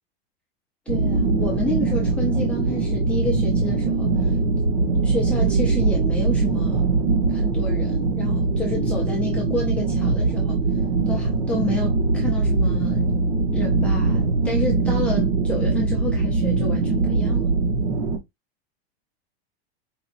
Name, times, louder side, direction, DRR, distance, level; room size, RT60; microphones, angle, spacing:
voice 1, 0.9-4.3 5.0-6.8 7.3-10.5 11.1-13.1 13.5-17.5, left 2 dB, 5° left, 0.6 m, -30 dB
sound 1, 0.9-18.2, right 3 dB, 80° right, 1.3 m, -22 dB
5.0 x 2.8 x 2.5 m
supercardioid pair, 180°, 31 cm